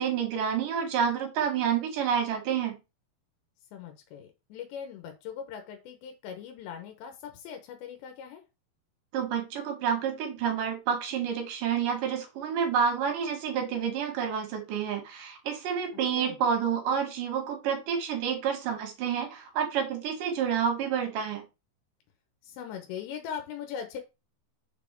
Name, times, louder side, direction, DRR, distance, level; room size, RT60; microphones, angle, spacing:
voice 1, 0.0-2.7 9.1-21.4, right 7 dB, 60° right, 4 dB, 3.0 m, -29 dB
voice 2, 3.7-8.4 16.1-16.4 22.4-24.0, left 8 dB, 90° left, 5 dB, 3.2 m, -40 dB
6.6 x 4.3 x 4.5 m, 0.26 s
omnidirectional pair, 4.9 m